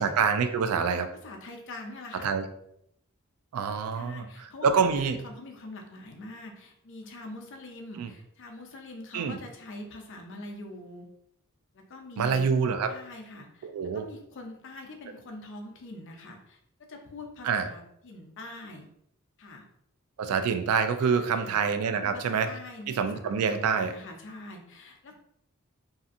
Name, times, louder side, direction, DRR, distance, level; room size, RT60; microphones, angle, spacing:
voice 1, 0.0-1.1 2.2-2.4 3.5-4.2 4.6-5.2 8.0-8.1 9.1-9.4 12.2-12.9 13.6-14.0 17.4-17.7 20.2-22.5 22.9-23.9, right 6 dB, 85° right, 8 dB, 0.3 m, -26 dB
voice 2, 1.2-2.3 3.9-11.1 11.7-12.4 12.9-18.9 19.4-19.6 21.0-21.6 22.0-25.1, left 2 dB, 60° left, 3 dB, 0.5 m, -44 dB
2.7 x 2.4 x 2.5 m, 0.72 s
head